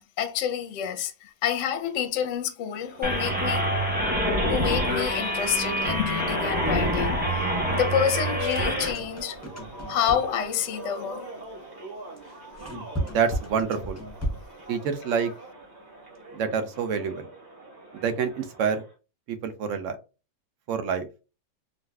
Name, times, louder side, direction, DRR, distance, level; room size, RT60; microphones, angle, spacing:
voice 1, 0.2-3.7 4.5-7.4 7.7-9.4 9.9-11.3, left 9 dB, 65° left, 0.8 m, -28 dB
sound 1, 2.7-18.9, right 2 dB, 30° right, 1.2 m, -42 dB
sound 2, 3.0-8.9, equal, 10° right, 0.8 m, -26 dB
sound 3, 8.1-10.5 12.2-14.6, equal, 20° left, 0.4 m, -35 dB
voice 2, 13.0-14.0 14.7-15.3 16.3-17.3 17.9-18.8 19.3-20.0 20.7-21.1, right 6 dB, 65° right, 0.9 m, -27 dB
3.9 x 2.5 x 2.2 m
omnidirectional pair, 1.6 m